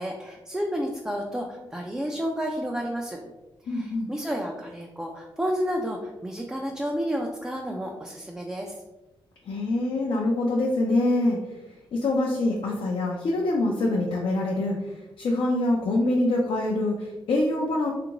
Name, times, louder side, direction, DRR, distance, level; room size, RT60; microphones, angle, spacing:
voice 1, 0.0-3.2 3.6-8.8, equal, 5° right, 0 dB, 0.3 m, -31 dB
voice 2, 3.7-4.1 9.5-11.4 11.9-14.7 15.2-17.9, left 2 dB, 65° left, -2 dB, 0.5 m, -25 dB
3.4 x 2.5 x 2.9 m, 1.0 s
wide cardioid pair, 125°, 10 cm